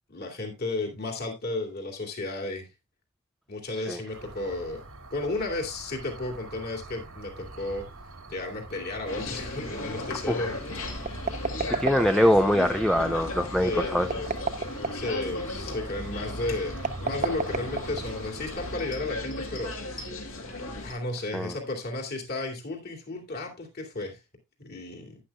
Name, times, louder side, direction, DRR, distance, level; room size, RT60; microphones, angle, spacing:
voice 1, 0.1-2.7 3.5-4.8 5.1-7.9 8.3-10.5 13.6-14.1 14.9-20.0 20.8-24.2 24.6-25.2, left 2 dB, 45° left, 2.5 m, -33 dB
sound 1, 4.1-18.8, right 2 dB, 90° right, 2.3 m, -44 dB
sound 2, 9.1-20.9, left 2 dB, 65° left, 2.4 m, -36 dB
sound 3, 11.0-12.5 14.0-15.1 16.8-18.3, right 4 dB, 35° right, 0.7 m, -30 dB
voice 2, 11.7-14.1 21.3-21.5, equal, ahead, 0.4 m, -23 dB
11.5 x 9.9 x 2.3 m
head